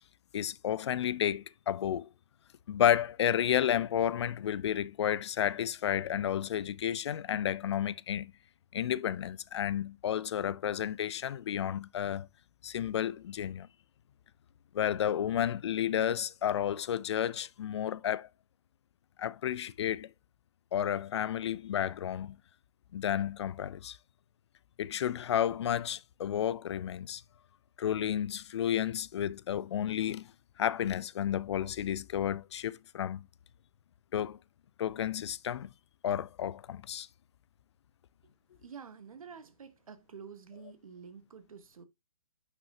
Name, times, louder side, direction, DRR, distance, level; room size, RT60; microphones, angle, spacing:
voice 1, 0.3-2.1 2.7-8.3 8.7-12.3 12.6-13.7 14.7-18.3 19.2-20.1 20.7-22.4 22.9-24.0 24.8-27.2 27.8-30.3 30.6-33.2 34.1-34.4 34.8-35.7 36.0-37.1, left 10 dB, 45° left, 0.6 m, -31 dB
voice 2, 38.6-41.8, right 6 dB, 65° right, 1.7 m, -49 dB
9.4 x 5.9 x 2.8 m
figure-of-eight pair, 135°, 19 cm